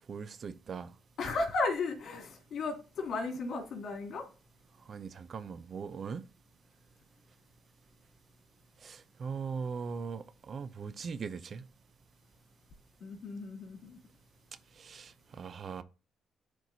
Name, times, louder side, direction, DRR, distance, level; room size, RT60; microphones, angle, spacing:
voice 1, 0.1-0.9 4.9-6.2 8.8-11.6 14.8-15.8, right 5 dB, 50° right, 0.6 m, -40 dB
voice 2, 1.2-4.2 13.0-14.0, left 3 dB, 65° left, 2.9 m, -35 dB
12.0 x 4.5 x 2.7 m
cardioid pair, 90°, 0 cm